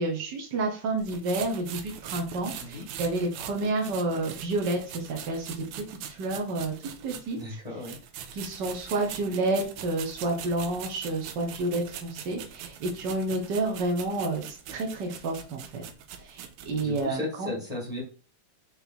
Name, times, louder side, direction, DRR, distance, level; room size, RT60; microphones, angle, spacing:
voice 1, 0.0-5.5 5.7-6.7 7.0-7.6 8.3-15.8 16.2-17.5, right 2 dB, 70° right, 1 dB, 1.0 m, -30 dB
sound 1, 1.0-7.4 7.8-17.1, right 9 dB, 90° right, 2.1 m, -42 dB
voice 2, 7.3-8.0 16.8-18.0, left 2 dB, 15° right, -4 dB, 2.1 m, -35 dB
5.3 x 4.1 x 4.5 m, 0.38 s
omnidirectional pair, 3.4 m